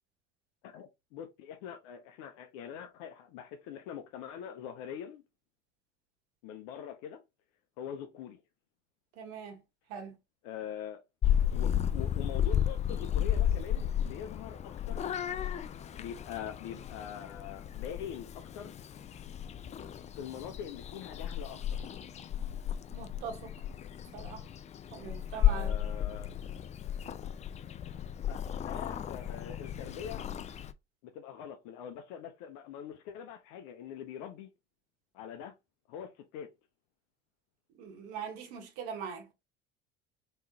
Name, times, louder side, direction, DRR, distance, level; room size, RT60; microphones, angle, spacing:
voice 1, 0.6-5.2 6.4-7.2 7.8-8.4 10.4-11.0 11.5-15.2 16.0-18.7 20.1-21.8 25.5-26.3 28.3-30.3 31.0-34.5 35.1-35.5 35.9-36.5, left 9 dB, 60° left, 0.7 m, -43 dB
voice 2, 9.1-9.6 9.9-10.2 22.9-23.5 24.1-24.5 24.9-25.9 37.7-39.3, right 6 dB, 60° right, 1.4 m, -42 dB
Purr / Meow, 11.2-30.7, left 10 dB, 25° left, 0.4 m, -33 dB
3.6 x 3.2 x 2.8 m
hypercardioid pair, 65°, 29 cm